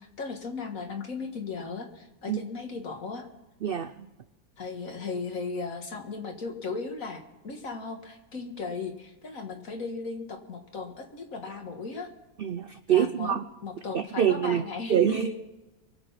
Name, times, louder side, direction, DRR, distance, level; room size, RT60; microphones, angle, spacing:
voice 1, 0.0-3.3 4.6-12.1 12.9-15.4, left 4 dB, 60° left, 4 dB, 2.1 m, -36 dB
voice 2, 3.6-4.1 12.4-13.4 13.9-14.6 14.9-15.3, right 9 dB, 70° right, 11 dB, 0.5 m, -25 dB
24.0 x 8.0 x 5.7 m, 1.0 s
omnidirectional pair, 1.6 m